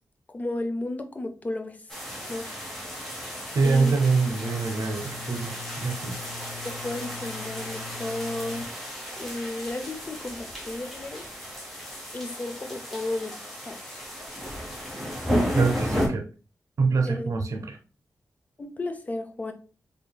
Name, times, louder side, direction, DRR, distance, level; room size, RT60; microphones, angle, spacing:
voice 1, 0.3-1.8 2.3-2.5 3.6-3.9 6.6-8.7 9.2-11.2 12.1-13.3 13.6-14.0 17.1-17.3 18.6-19.5, left 2 dB, 25° left, 6 dB, 0.5 m, -33 dB
sound 1, 1.9-16.1, equal, 5° left, 1.0 m, -33 dB
voice 2, 3.5-6.2 15.5-16.2 16.8-17.8, right 4 dB, 70° right, 4 dB, 0.7 m, -25 dB
sound 2, 3.6-8.6, left 6 dB, 50° left, 1.1 m, -43 dB
3.7 x 3.5 x 2.2 m, 0.35 s
wide cardioid pair, 155°, 6 cm